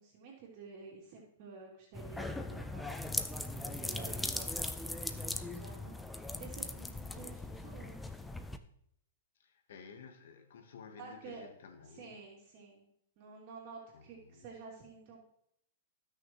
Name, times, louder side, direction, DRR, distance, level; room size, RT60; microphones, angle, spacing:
voice 1, 0.0-4.7 5.0-8.1 11.0-11.4 11.9-12.9 13.2-15.2, right 4 dB, 45° right, 3.1 m, -51 dB
sound 1, 1.9-8.6, left 2 dB, 5° left, 0.7 m, -39 dB
voice 2, 9.4-12.1 13.9-14.5, left 5 dB, 70° left, 1.5 m, -53 dB
18.5 x 6.4 x 3.2 m
hypercardioid pair, 140°, 0 cm